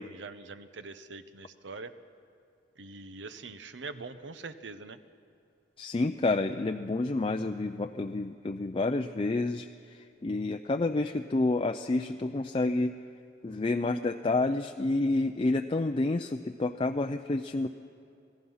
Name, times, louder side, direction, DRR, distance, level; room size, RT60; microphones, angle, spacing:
voice 1, 0.0-1.9 2.8-5.0, right 3 dB, 80° right, 11 dB, 0.9 m, -43 dB
voice 2, 5.8-13.0 13.4-17.7, left 2 dB, 30° left, 6 dB, 0.4 m, -29 dB
26.0 x 17.5 x 5.6 m, 2.5 s
head